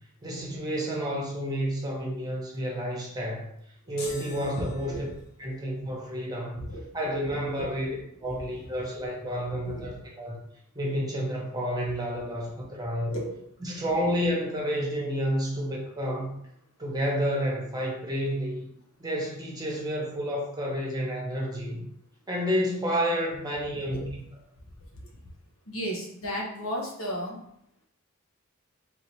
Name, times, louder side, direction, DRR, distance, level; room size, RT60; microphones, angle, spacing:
voice 1, 0.2-3.5 3.9-5.1 5.4-6.6 6.9-7.9 8.2-10.4 10.7-13.2 13.6-16.3 16.8-18.7 19.0-21.8 22.3-24.2, equal, 20° right, -3 dB, 1.0 m, -30 dB
sound 1, 4.0-5.5, left 2 dB, 50° left, 0.8 m, -44 dB
voice 2, 4.6-5.0 6.6-6.8 7.4-7.7 9.6-9.9 13.0-13.3 23.9-24.1 24.9-25.1 25.7-27.4, equal, 90° left, -1 dB, 1.1 m, -34 dB
3.6 x 2.7 x 4.6 m, 0.73 s
head